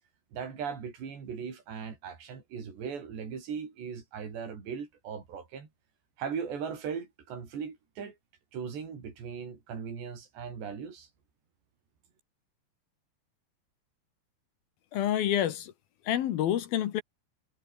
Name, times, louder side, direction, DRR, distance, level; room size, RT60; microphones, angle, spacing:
voice 1, 0.3-5.7 6.2-8.2 8.5-11.1, right 6 dB, 70° right, 7.2 m, -38 dB
voice 2, 14.9-15.7 16.1-17.0, left 11 dB, 65° left, 2.9 m, -28 dB
omnidirectional pair, 5.1 m